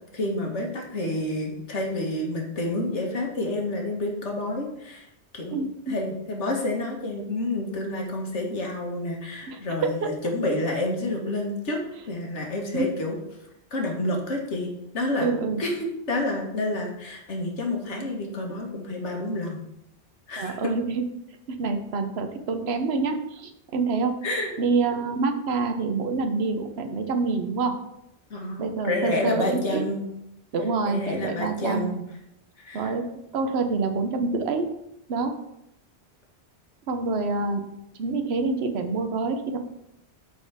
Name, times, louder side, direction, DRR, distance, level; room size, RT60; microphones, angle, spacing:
voice 1, 0.1-5.1 5.3-5.6 5.9-11.8 12.1-13.2 13.7-15.3 15.6-19.6 20.3-20.7 24.2-24.5 28.3-30.1 30.9-32.0 32.6-32.9, left 1 dB, 90° left, 0 dB, 1.8 m, -29 dB
voice 2, 5.5-5.9 9.5-10.1 12.7-12.9 15.2-15.6 20.4-21.1 21.5-24.2 24.6-27.8 28.6-29.8 30.5-31.9 32.7-33.0 33.3-34.7 35.1-35.4 36.9-37.6 38.0-39.6, right 4 dB, 65° right, 6 dB, 1.1 m, -26 dB
13.5 x 4.6 x 3.5 m, 0.83 s
omnidirectional pair, 1.2 m